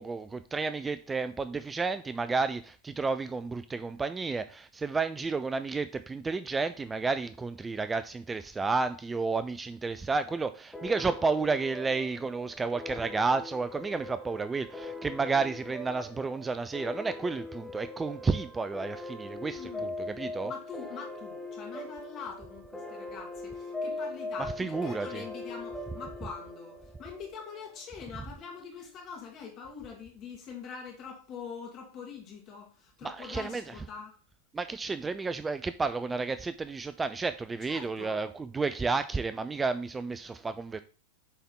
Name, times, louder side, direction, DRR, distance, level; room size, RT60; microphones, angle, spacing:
voice 1, 0.0-20.5 24.6-25.2 33.0-33.6 34.5-40.8, right 4 dB, 15° right, 0.3 m, -31 dB
sound 1, 10.7-27.8, left 2 dB, 5° left, 1.0 m, -41 dB
voice 2, 19.5-19.9 20.4-34.2 37.6-38.2, left 6 dB, 35° left, 1.6 m, -44 dB
8.2 x 3.6 x 3.8 m
figure-of-eight pair, 90°, 0 cm